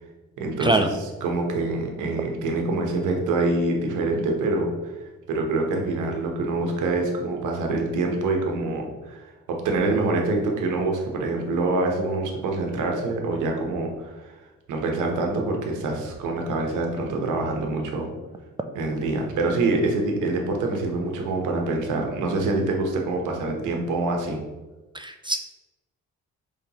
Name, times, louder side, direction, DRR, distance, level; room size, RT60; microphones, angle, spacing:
voice 1, 0.4-0.9 1.2-4.9 5.3-14.3 14.7-18.1 18.7-24.4, right 2 dB, 85° right, 2 dB, 1.0 m, -25 dB
voice 2, 24.9-25.4, right 2 dB, 15° right, 6 dB, 0.3 m, -23 dB
5.4 x 3.3 x 2.9 m, 1.2 s
cardioid pair, 90°, 30 cm